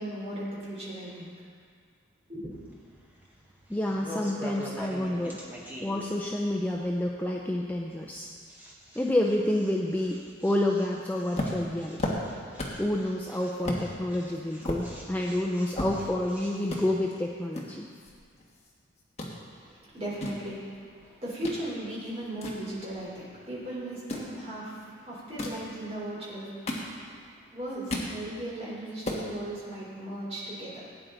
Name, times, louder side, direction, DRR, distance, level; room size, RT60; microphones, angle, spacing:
voice 1, 0.0-1.3 2.3-2.5 19.6-26.6 26.9-27.0 27.5-30.9, right 1 dB, 30° right, -7 dB, 3.7 m, -37 dB
sound 1, 2.6-17.2, right 1 dB, 10° right, 1.4 m, -46 dB
voice 2, 3.7-5.4 5.8-8.3 9.0-12.2 12.8-17.9, left 1 dB, 10° left, -1 dB, 0.5 m, -29 dB
sound 2, 11.4-12.9 13.2-13.3 13.6-13.9 14.3-16.3 16.6-16.8 17.5-18.7 19.0-19.3 19.9-21.6 22.0-23.3 23.9-24.3 25.2-25.7 26.3-27.3 27.6-28.2 28.6-28.7 28.9-29.3, left 1 dB, 30° left, 1.5 m, -34 dB
17.5 x 9.3 x 3.9 m, 2.1 s
head